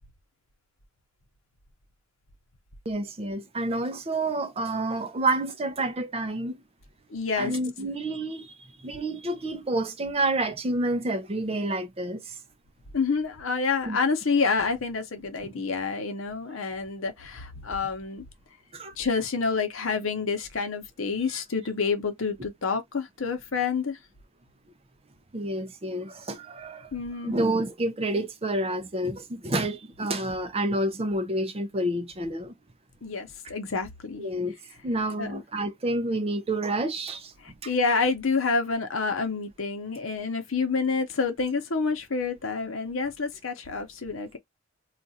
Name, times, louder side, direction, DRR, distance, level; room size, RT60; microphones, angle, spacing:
voice 1, 2.9-6.6 7.4-8.5 8.8-12.3 13.9-14.0 18.7-18.9 25.3-26.9 27.2-32.5 34.2-34.6 34.8-37.3, right 1 dB, 30° right, 0.5 m, -29 dB
voice 2, 7.1-7.6 12.9-18.2 19.0-24.0 26.9-27.4 33.0-34.3 35.2-35.4 37.4-44.4, left 4 dB, 75° left, 0.8 m, -28 dB
2.4 x 2.4 x 4.0 m
head